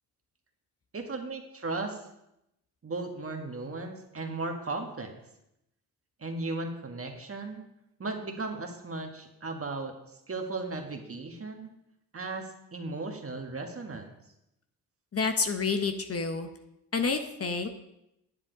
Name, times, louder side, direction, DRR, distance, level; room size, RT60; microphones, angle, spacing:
voice 1, 0.9-2.0 2.8-5.1 6.2-7.7 8.0-9.9 10.3-11.7 12.1-14.1, right 3 dB, 35° right, 3 dB, 1.7 m, -36 dB
voice 2, 15.1-16.5 16.9-17.7, left 4 dB, 35° left, 7 dB, 0.9 m, -29 dB
9.8 x 7.4 x 4.0 m, 0.84 s
supercardioid pair, 55°, 40 cm